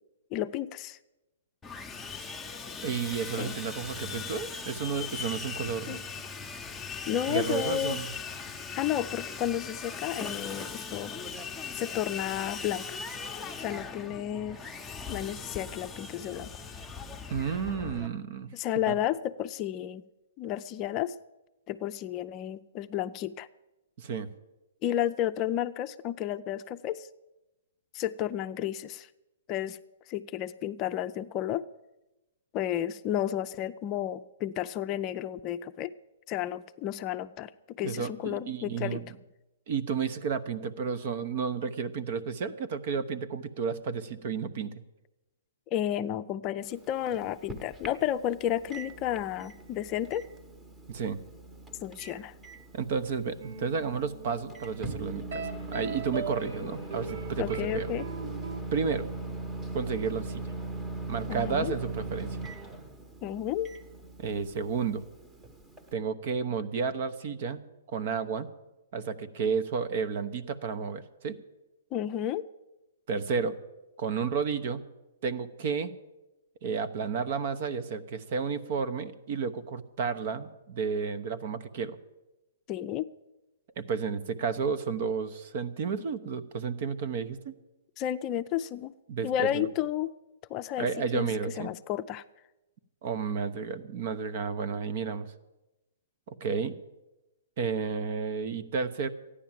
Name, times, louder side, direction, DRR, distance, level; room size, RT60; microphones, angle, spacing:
voice 1, 0.3-1.0 3.3-3.6 5.9-6.0 7.1-8.0 8.8-11.1 11.7-13.0 13.6-14.6 15.1-16.5 18.5-20.0 20.4-21.1 21.7-23.5 24.8-27.1 27.9-29.1 29.5-29.8 30.1-31.6 32.5-35.9 36.3-39.0 45.7-50.2 51.8-52.3 57.4-58.0 61.3-61.7 63.2-63.7 71.9-72.5 82.7-83.1 88.0-88.9 89.2-90.1 90.5-90.9 91.1-91.3 91.6-92.2, left 11 dB, 35° left, 11 dB, 0.5 m, -32 dB
Sawing, 1.6-18.1, left 5 dB, 10° left, 0.9 m, -39 dB
voice 2, 2.8-6.0 7.3-8.1 17.3-18.5 18.9-19.0 24.0-24.3 37.8-39.0 39.7-44.7 50.9-51.2 52.7-57.9 58.7-59.1 59.7-60.4 61.1-62.4 64.2-65.0 65.9-67.6 67.9-68.5 68.9-71.4 73.1-73.5 74.0-74.8 75.2-75.9 76.6-82.0 83.8-87.5 89.1-89.7 90.8-91.7 93.0-95.3 96.3-96.8 97.6-99.1, right 5 dB, 50° right, 16 dB, 1.0 m, -32 dB
Microwave oven, 46.6-65.9, right 3 dB, 10° right, 1.1 m, -40 dB
sound 1, 53.4-58.6, right 4 dB, 70° right, 2.0 m, -40 dB
14.0 x 10.0 x 7.5 m, 1.0 s
hypercardioid pair, 125°, 0 cm